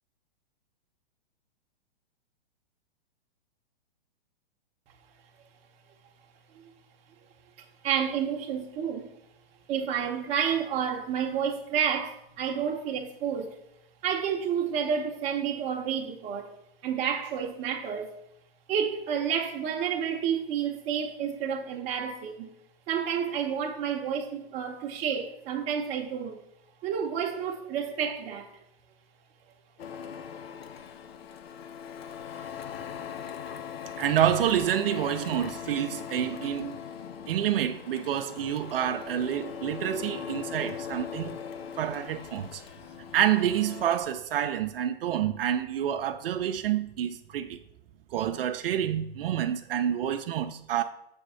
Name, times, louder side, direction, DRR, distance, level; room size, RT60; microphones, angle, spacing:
voice 1, 7.8-9.1 9.7-13.6 14.0-16.5 16.8-18.2 18.7-22.5 22.9-26.4 26.8-28.5, right 8 dB, 25° right, 0.8 m, -30 dB
Printer, 29.8-44.0, left 7 dB, 80° left, 0.7 m, -40 dB
voice 2, 34.0-36.8 37.3-41.4 41.8-42.6 43.1-47.6 48.1-50.8, right 10 dB, 70° right, 0.5 m, -28 dB
7.2 x 3.5 x 5.6 m
hypercardioid pair, 150°, 30 cm